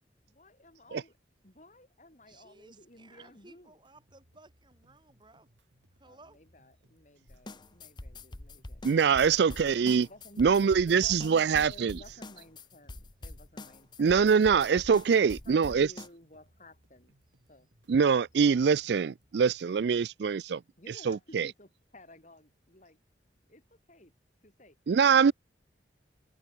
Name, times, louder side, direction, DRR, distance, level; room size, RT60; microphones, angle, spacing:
voice 1, 0.3-1.2 1.4-3.8 6.0-9.2 10.0-14.7 15.5-17.1 17.5-18.2 20.8-23.0 23.5-24.1 24.4-24.8 25.1-25.3, left 1 dB, 40° left, 7.4 m, -55 dB
voice 2, 2.3-5.5 6.0-6.4 13.3-13.4, right 2 dB, 25° right, 3.9 m, -57 dB
sound 1, 3.8-19.8, equal, 80° right, 7.7 m, -68 dB
sound 2, 7.3-16.1, left 2 dB, 25° left, 0.9 m, -45 dB
voice 3, 8.8-10.1 10.4-12.0 14.0-15.9 17.9-20.6 21.0-21.5 24.9-25.3, right 6 dB, 60° right, 0.4 m, -24 dB
head